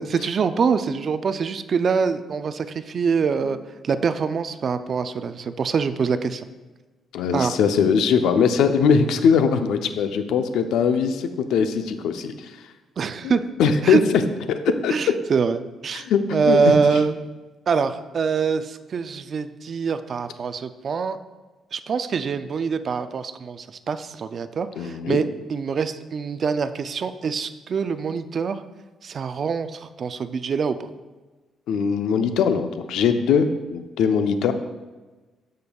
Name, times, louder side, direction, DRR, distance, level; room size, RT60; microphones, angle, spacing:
voice 1, 0.0-3.6 3.8-6.4 7.3-7.5 13.0-13.4 13.8-14.0 14.9-16.1 16.3-17.2 17.7-21.2 21.7-28.6 29.0-30.8, right 5 dB, 40° right, 11 dB, 0.3 m, -24 dB
voice 2, 7.1-12.5 13.2-14.0 14.5-14.9 15.9-16.2 16.5-17.0 24.8-25.2 31.7-34.5, left 6 dB, 85° left, 8 dB, 0.5 m, -21 dB
13.0 x 5.2 x 2.3 m, 1.2 s
cardioid pair, 145°, 0 cm